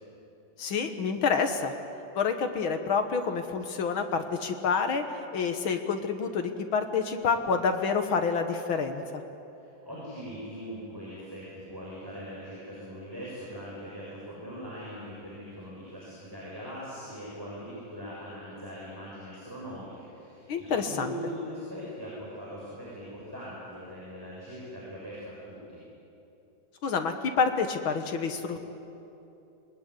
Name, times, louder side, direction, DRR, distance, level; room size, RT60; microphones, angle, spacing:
voice 1, 0.6-1.7 2.1-5.0 5.3-9.0 20.5-21.1 26.8-28.6, left 5 dB, 60° left, 6 dB, 1.4 m, -28 dB
voice 2, 9.5-25.8, equal, 5° right, -7 dB, 6.6 m, -41 dB
26.0 x 21.0 x 9.9 m, 2.9 s
omnidirectional pair, 3.8 m